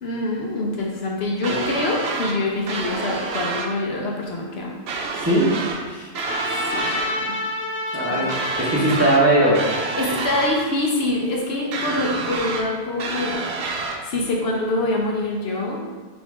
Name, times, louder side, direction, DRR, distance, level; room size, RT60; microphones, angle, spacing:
voice 1, 0.0-4.8 6.5-7.4 7.9-8.3 10.0-13.4 14.0-15.8, left 2 dB, 60° left, -1 dB, 0.9 m, -25 dB
sound 1, 1.4-2.4 2.7-3.7 4.9-5.8 6.1-7.1 8.3-9.2 9.5-10.5 11.7-12.7 13.0-14.0, right 4 dB, 65° right, 0.8 m, -28 dB
Trumpet, 6.2-10.6, left 2 dB, 20° left, 0.4 m, -29 dB
voice 2, 7.9-8.3 8.6-9.7, right 1 dB, 15° right, -6 dB, 0.7 m, -19 dB
3.7 x 3.0 x 4.8 m, 1.5 s
omnidirectional pair, 1.2 m